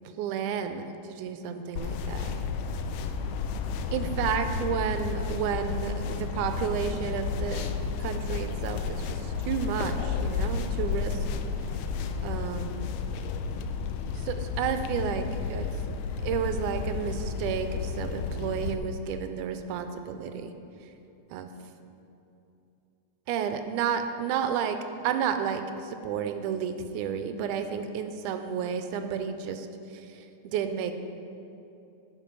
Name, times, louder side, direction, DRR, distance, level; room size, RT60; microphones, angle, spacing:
voice 1, 0.2-0.8 1.1-2.3 3.9-7.7 8.0-11.3 12.2-12.9 14.1-15.7 16.2-20.5 21.3-21.5 23.3-24.8 25.0-31.0, right 7 dB, 85° right, 8 dB, 2.0 m, -31 dB
sound 1, 1.8-18.7, left 5 dB, 90° left, 1.5 m, -32 dB
12.5 x 5.0 x 5.3 m, 2.8 s
omnidirectional pair, 3.6 m